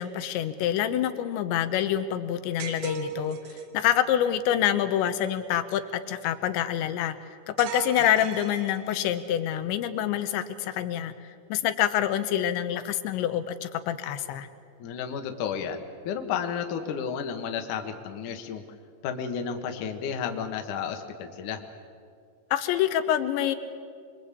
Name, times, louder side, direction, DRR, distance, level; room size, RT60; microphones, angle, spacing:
voice 1, 0.0-3.4 3.7-11.1 11.5-14.5 22.5-23.6, left 11 dB, 85° left, 9 dB, 3.2 m, -26 dB
sound 1, 2.6-3.8 7.6-9.2, right 9 dB, 85° right, 3.8 m, -37 dB
voice 2, 14.8-18.6 19.0-21.6, left 7 dB, 60° left, 5 dB, 2.5 m, -32 dB
26.0 x 23.0 x 8.4 m, 2.3 s
omnidirectional pair, 5.1 m